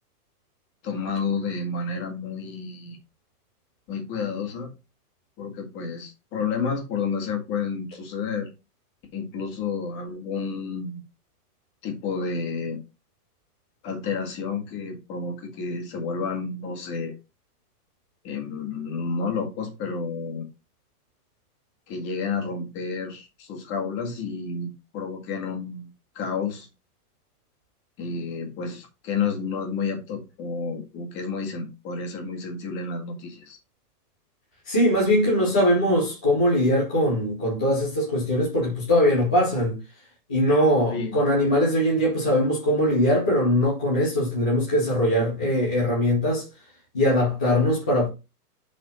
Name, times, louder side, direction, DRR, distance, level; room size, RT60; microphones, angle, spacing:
voice 1, 0.8-3.0 3.9-4.7 5.4-8.5 9.1-11.0 11.8-12.8 13.8-17.1 18.2-20.5 21.9-25.9 26.2-26.7 28.0-33.6 40.9-41.1, left 5 dB, 25° left, 1.9 m, -30 dB
voice 2, 34.7-39.8 40.3-46.4 46.9-48.1, left 1 dB, 5° left, 0.4 m, -21 dB
7.6 x 4.2 x 4.1 m
hypercardioid pair, 150°, 47 cm